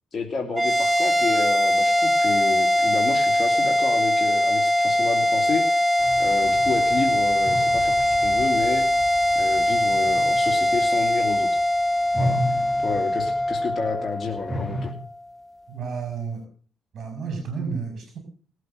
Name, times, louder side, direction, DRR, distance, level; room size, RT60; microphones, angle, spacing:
voice 1, 0.1-5.9 6.2-8.9 9.3-11.6 12.2-12.4 12.8-14.9, left 5 dB, 30° left, 0 dB, 2.8 m, -30 dB
sound 1, 0.5-15.1, left 1 dB, 10° right, 1.3 m, -21 dB
sound 2, 6.0-11.6 12.0-14.9, equal, 10° left, 2.5 m, -34 dB
voice 2, 15.7-16.4 16.9-18.2, right 5 dB, 60° right, 6 dB, 5.0 m, -31 dB
19.0 x 8.3 x 6.4 m, 0.42 s
cardioid pair, 90°, 0 cm